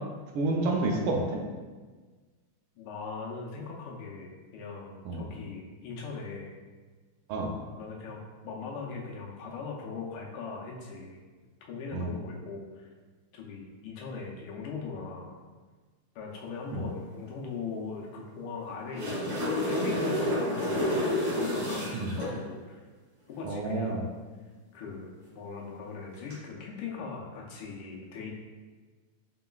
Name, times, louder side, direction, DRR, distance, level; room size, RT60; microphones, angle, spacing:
voice 1, 0.3-1.4 5.0-5.2 7.3-7.5 11.9-12.1 16.7-16.8 21.9-22.1 23.4-24.0, right 2 dB, 80° right, 0 dB, 1.4 m, -29 dB
voice 2, 2.8-6.5 7.8-11.2 11.7-12.9 13.3-15.3 16.1-22.8 23.3-24.0 24.7-28.3, left 4 dB, 85° left, -2 dB, 1.6 m, -40 dB
sound 1, 18.7-22.3 26.1-26.3, left 1 dB, 50° right, 1.6 m, -29 dB
4.1 x 3.8 x 2.3 m, 1.4 s
omnidirectional pair, 2.3 m